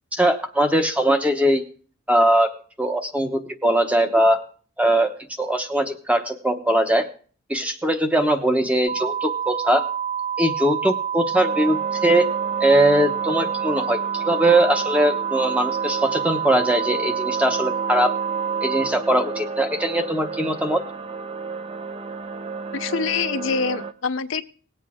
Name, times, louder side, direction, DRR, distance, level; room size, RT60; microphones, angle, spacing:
voice 1, 0.1-1.6 2.1-2.5 2.8-4.4 4.8-5.1 5.4-7.1 7.5-9.8 10.4-12.3 12.6-18.1 18.6-20.8, right 1 dB, 5° right, 6 dB, 1.0 m, -20 dB
sound 1, 8.9-18.9, right 8 dB, 60° right, 5.0 m, -27 dB
sound 2, 11.3-23.9, right 4 dB, 25° right, 0.5 m, -33 dB
voice 2, 22.7-24.4, left 5 dB, 60° left, 9 dB, 0.6 m, -25 dB
19.0 x 8.2 x 3.7 m, 0.43 s
head